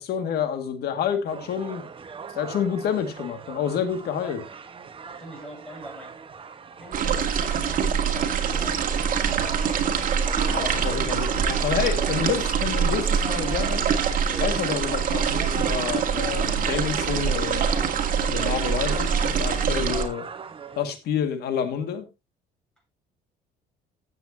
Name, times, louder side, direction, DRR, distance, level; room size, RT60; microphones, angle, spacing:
voice 1, 0.0-1.8 2.3-4.4 10.5-13.8 14.4-17.7 18.3-20.2 20.8-22.0, left 8 dB, 70° left, 2.0 m, -28 dB
sound 1, 1.3-20.8, right 6 dB, 30° right, 1.2 m, -39 dB
voice 2, 5.0-6.2 6.7-9.3 19.9-20.2, equal, 5° left, 7.3 m, -45 dB
sound 2, 6.9-20.1, right 7 dB, 55° right, 2.1 m, -24 dB
15.0 x 7.8 x 2.8 m
cardioid pair, 110°, 17 cm